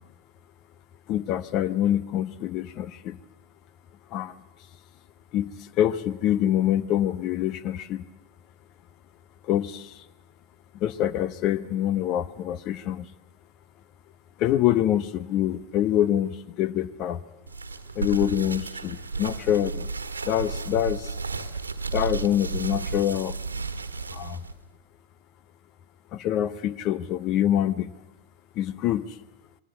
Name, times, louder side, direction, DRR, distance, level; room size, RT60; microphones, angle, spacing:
voice 1, 1.1-3.2 4.1-4.3 5.3-8.0 9.5-10.0 10.7-13.1 14.4-17.2 18.0-19.8 20.2-21.1 21.9-23.3 24.1-24.4 26.1-27.9 28.6-29.2, left 11 dB, 40° left, 16 dB, 1.0 m, -25 dB
sound 1, 17.5-24.5, right 4 dB, 75° right, 1.5 m, -33 dB
27.0 x 22.5 x 8.0 m, 0.94 s
figure-of-eight pair, 90°, 0 cm